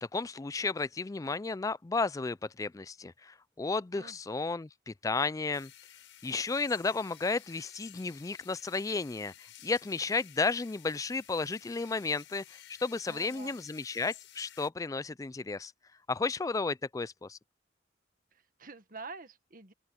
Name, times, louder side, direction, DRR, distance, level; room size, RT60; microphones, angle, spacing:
voice 1, 0.0-5.7 6.2-15.7 16.1-17.4, left 4 dB, 20° left, 0.3 m, -33 dB
sound 1, 5.5-14.7, left 12 dB, 85° left, 5.3 m, -54 dB
voice 2, 13.0-13.6 18.3-19.7, right 4 dB, 50° right, 1.7 m, -47 dB
open air
head